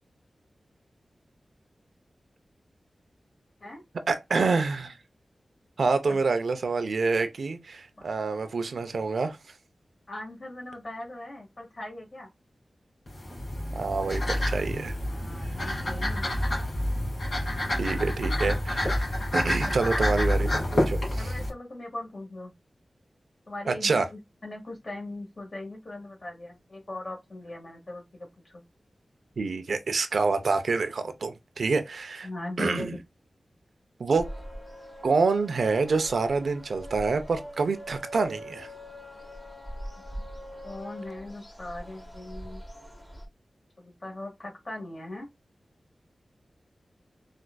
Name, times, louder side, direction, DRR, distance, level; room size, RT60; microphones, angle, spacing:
voice 1, 4.1-5.0 5.8-9.4 13.7-15.0 17.8-19.0 19.3-21.3 23.7-24.1 29.4-32.3 32.6-33.0 34.0-34.3 35.0-38.7, right 4 dB, 80° right, 0.5 m, -27 dB
voice 2, 10.1-12.3 15.1-16.3 17.6-18.2 19.6-20.1 21.2-22.5 23.5-24.0 24.4-28.6 32.2-33.0 40.6-42.6 43.8-45.3, left 2 dB, 45° left, 1.6 m, -39 dB
sound 1, 13.1-21.5, left 1 dB, 60° left, 2.0 m, -28 dB
sound 2, 34.2-43.3, equal, 10° left, 0.9 m, -42 dB
4.3 x 2.4 x 2.2 m
wide cardioid pair, 105°, 0 cm